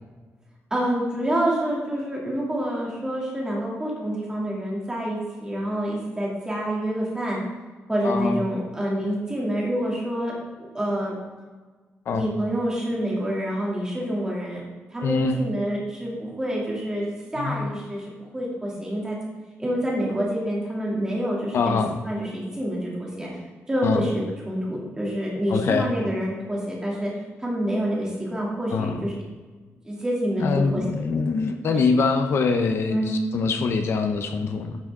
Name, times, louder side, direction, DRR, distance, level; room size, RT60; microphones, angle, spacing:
voice 1, 0.7-7.4 7.9-10.3 10.7-11.2 12.1-14.6 14.9-19.2 19.6-21.8 22.0-23.3 23.7-27.1 27.4-29.1 29.8-30.8 32.9-33.1, equal, 15° right, -4 dB, 2.6 m, -27 dB
voice 2, 8.0-8.4 12.1-12.3 15.0-15.4 17.4-17.7 21.5-22.0 23.8-24.0 25.5-25.9 28.7-29.0 30.4-34.8, left 4 dB, 60° left, 6 dB, 0.7 m, -24 dB
10.5 x 6.3 x 3.7 m, 1.3 s
wide cardioid pair, 150°, 5 cm